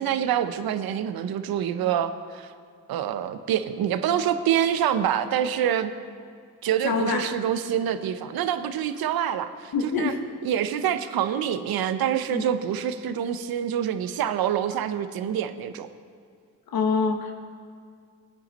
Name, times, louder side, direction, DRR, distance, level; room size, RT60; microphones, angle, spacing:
voice 1, 0.0-2.5 2.9-5.9 6.6-10.1 10.4-15.9, right 9 dB, 85° right, 11 dB, 0.7 m, -26 dB
voice 2, 6.8-7.2 9.7-10.2 12.3-12.4 16.7-17.3, left 4 dB, 80° left, 4 dB, 1.2 m, -25 dB
17.0 x 9.0 x 4.1 m, 2.2 s
supercardioid pair, 45°, 35 cm